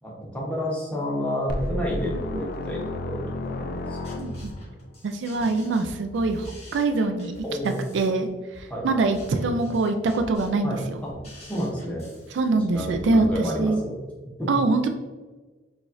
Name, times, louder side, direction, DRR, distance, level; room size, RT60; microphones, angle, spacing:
voice 1, 0.0-4.4 5.3-5.5 7.4-7.8 8.7-9.0 9.5-9.6 10.6-11.1 11.4-12.1 12.5-14.0 14.2-14.5, equal, 5° left, -4 dB, 0.9 m, -31 dB
sound 1, 1.5-4.7, left 1 dB, 50° left, 0.3 m, -32 dB
sound 2, 3.8-13.3, left 1 dB, 35° left, 1.1 m, -43 dB
voice 2, 4.2-4.5 5.0-7.3 7.9-8.3 8.5-10.8 12.3-13.8 14.5-14.9, right 3 dB, 70° right, 7 dB, 0.3 m, -24 dB
4.9 x 2.5 x 2.5 m, 1.3 s
head